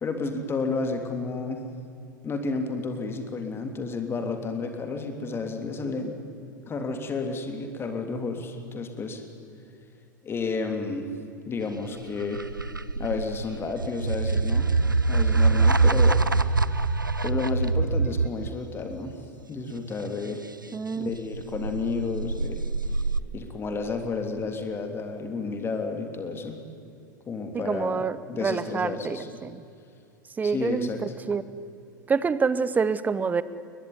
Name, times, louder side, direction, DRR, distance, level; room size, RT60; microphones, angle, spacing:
voice 1, 0.0-1.6 2.2-6.2 6.7-9.2 10.2-11.1 11.5-12.5 13.0-14.7 15.1-16.2 17.2-19.1 19.5-20.4 21.0-23.0 23.3-26.6 27.3-29.3 30.4-31.0, left 4 dB, 20° left, 6 dB, 3.1 m, -31 dB
sound 1, 11.8-18.5 21.1-23.2, right 3 dB, 90° right, 0.7 m, -24 dB
voice 2, 20.7-21.1 27.5-29.6 30.4-31.4 32.1-33.4, right 5 dB, 15° right, 16 dB, 0.9 m, -27 dB
21.0 x 21.0 x 9.8 m, 2.7 s
figure-of-eight pair, 85°, 11 cm